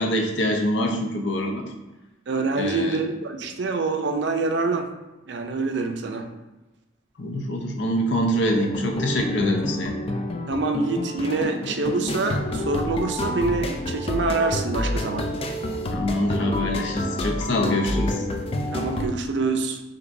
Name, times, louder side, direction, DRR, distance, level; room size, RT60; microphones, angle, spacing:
voice 1, 0.0-1.6 2.6-3.0 7.2-9.9 15.9-18.2, left 1 dB, 70° left, 2 dB, 0.7 m, -24 dB
voice 2, 2.3-4.9 5.3-6.3 9.4-9.5 10.5-15.3 18.7-19.8, right 3 dB, 65° right, 5 dB, 0.5 m, -26 dB
sound 1, 8.5-19.1, left 1 dB, 30° left, 0.4 m, -29 dB
6.0 x 2.8 x 2.6 m, 1.1 s
head